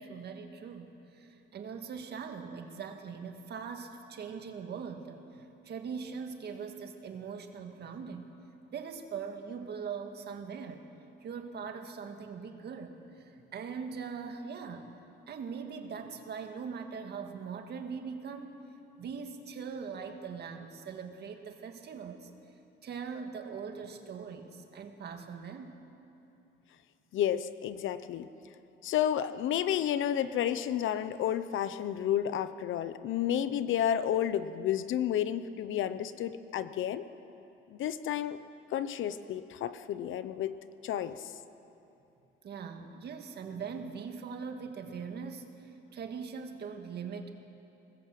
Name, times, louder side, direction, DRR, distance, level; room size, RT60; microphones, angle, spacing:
voice 1, 0.0-8.3 8.7-10.8 11.2-14.9 15.3-18.5 19.0-22.3 22.8-25.8 42.4-47.3, right 6 dB, 55° right, 5 dB, 1.9 m, -41 dB
voice 2, 27.1-28.3 28.8-37.1 37.7-38.4 38.7-40.6 40.8-41.3, left 10 dB, 75° left, 13 dB, 0.9 m, -31 dB
23.5 x 20.0 x 7.7 m, 2.9 s
cardioid pair, 150°, 20 cm